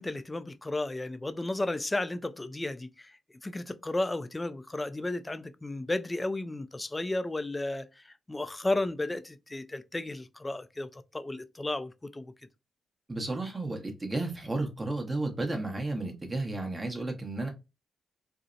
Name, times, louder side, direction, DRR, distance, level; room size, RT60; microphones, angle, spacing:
voice 1, 0.0-3.2 3.4-12.3, left 2 dB, 20° left, 0.3 m, -33 dB
voice 2, 13.1-17.5, right 2 dB, 25° right, 0.8 m, -33 dB
2.6 x 2.0 x 2.5 m
cardioid pair, 60°, 0 cm